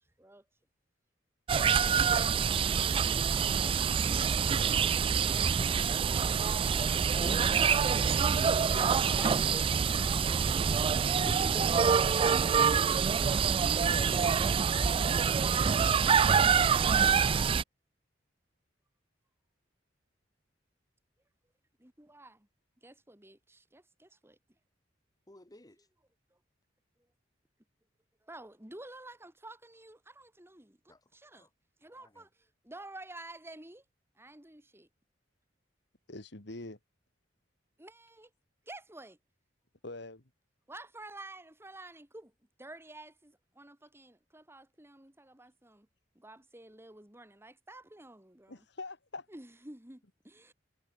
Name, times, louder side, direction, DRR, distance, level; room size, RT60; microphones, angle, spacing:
sound 1, 1.5-17.6, right 6 dB, 30° right, 0.3 m, -26 dB
voice 1, 5.3-5.7 8.7-10.6 21.8-22.5 22.8-24.4 28.2-31.5 31.8-33.8 34.2-34.9 37.8-38.3 38.7-39.2 40.7-42.3 42.6-45.9 46.2-48.6 49.3-50.5, right 2 dB, 15° right, 2.0 m, -50 dB
voice 2, 7.2-7.5 8.4-9.6 11.2-12.9 25.3-25.8 30.9-31.0 31.3-31.5 32.0-32.1, left 1 dB, 20° left, 1.7 m, -46 dB
voice 3, 36.1-36.8 39.8-40.2 48.5-49.3, left 2 dB, 65° left, 2.3 m, -43 dB
head